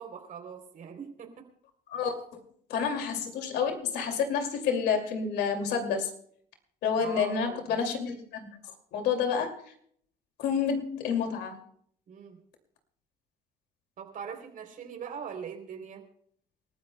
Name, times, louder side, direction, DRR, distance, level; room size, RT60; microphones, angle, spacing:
voice 1, 0.0-1.5 2.8-2.9 7.0-7.8 12.1-12.3 14.0-16.0, right 7 dB, 55° right, 5 dB, 3.3 m, -41 dB
voice 2, 2.7-6.1 6.8-8.6 8.9-9.5 10.4-11.6, left 6 dB, 80° left, 5 dB, 2.4 m, -29 dB
28.5 x 13.5 x 2.2 m, 0.64 s
cardioid pair, 110°, 17 cm